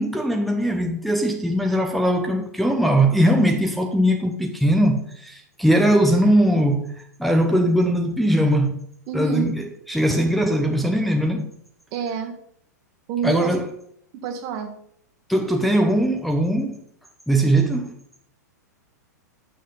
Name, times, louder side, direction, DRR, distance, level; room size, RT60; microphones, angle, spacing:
voice 1, 0.0-6.9 7.2-8.8 9.1-11.5 13.2-13.7 15.3-16.8 17.3-17.9, right 1 dB, ahead, 0.8 m, -20 dB
voice 2, 9.1-9.5 11.9-12.3 13.1-13.5 14.2-14.7, right 6 dB, 45° right, 1.4 m, -27 dB
8.3 x 6.3 x 4.0 m
hypercardioid pair, 105°, 9 cm